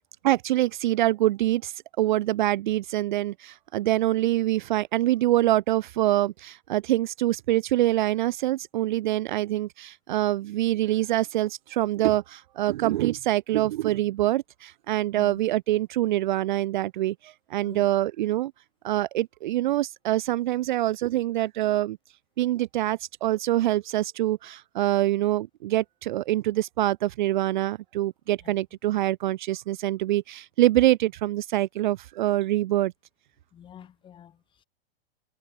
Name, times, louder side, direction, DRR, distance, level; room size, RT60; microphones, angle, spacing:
voice 1, 0.2-18.5 18.8-22.0 22.4-32.9, right 15 dB, 50° right, 0.7 m, -25 dB
voice 2, 33.5-34.6, left 9 dB, 15° left, 5.1 m, -48 dB
hypercardioid pair, 165°, 30 cm